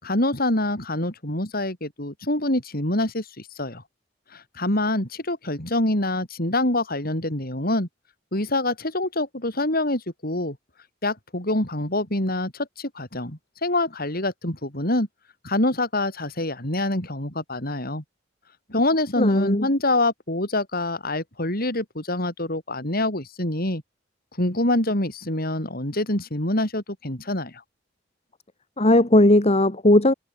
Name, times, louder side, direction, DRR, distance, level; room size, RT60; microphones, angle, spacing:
voice 1, 0.0-3.8 4.3-7.9 8.3-10.6 11.0-15.1 15.4-18.0 18.7-23.8 24.4-27.5, left 1 dB, 50° left, 6.5 m, -25 dB
voice 2, 19.2-19.7 28.8-30.1, left 1 dB, 35° left, 2.2 m, -17 dB
head